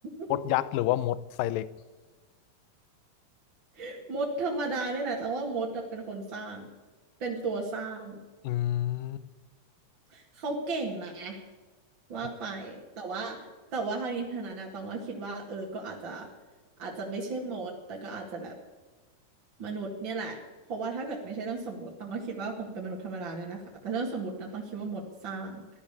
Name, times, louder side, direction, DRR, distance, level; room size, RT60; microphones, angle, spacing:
voice 1, 0.3-1.7 8.4-9.3, left 14 dB, 80° left, 2.1 m, -28 dB
voice 2, 3.8-6.7 7.2-8.2 10.1-11.4 12.1-13.4 13.7-16.3 16.8-18.5 19.6-20.4 20.7-25.6, right 3 dB, 40° right, 2.1 m, -35 dB
16.0 x 12.0 x 6.7 m
omnidirectional pair, 4.4 m